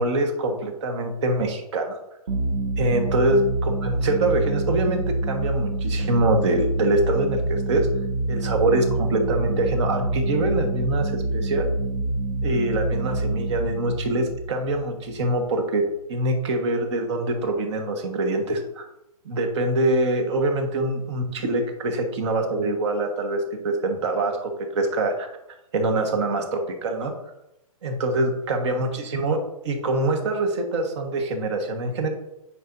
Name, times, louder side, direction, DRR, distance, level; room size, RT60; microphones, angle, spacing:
voice 1, 0.0-2.0 2.8-7.9 8.3-11.7 12.4-15.8 16.1-18.8 19.2-25.3 25.7-27.1 27.8-32.1, right 2 dB, 50° right, 4 dB, 1.5 m, -24 dB
sound 1, 2.3-15.6, right 2 dB, 75° right, 0.8 m, -26 dB
10.0 x 4.9 x 2.7 m, 0.88 s
hypercardioid pair, 145°, 19 cm